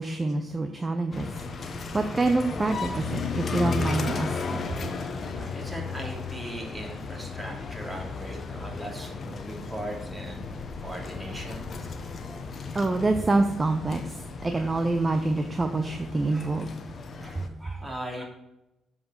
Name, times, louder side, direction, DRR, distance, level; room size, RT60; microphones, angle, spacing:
voice 1, 0.0-4.6 12.3-12.4 12.7-16.9 17.4-17.6, right 2 dB, 25° right, 7 dB, 0.7 m, -27 dB
sound 1, 1.1-17.5, left 4 dB, 50° left, 0.9 m, -35 dB
voice 2, 5.3-11.9 12.7-12.8 14.5-14.8 16.3-16.5 17.2-18.2, right 1 dB, 10° right, -1 dB, 2.9 m, -39 dB
7.4 x 4.9 x 6.3 m, 0.92 s
supercardioid pair, 65°, 0 cm